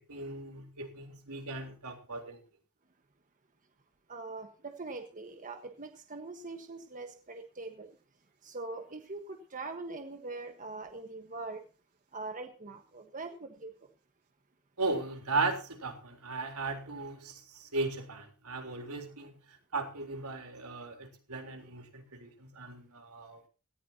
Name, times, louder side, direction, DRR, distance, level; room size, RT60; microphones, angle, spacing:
voice 1, 0.1-2.4 14.8-23.4, right 3 dB, 85° right, 3.7 m, -37 dB
voice 2, 4.1-7.9 8.4-11.6 12.1-13.7, right 3 dB, 35° right, 1.4 m, -42 dB
18.0 x 14.5 x 2.8 m
head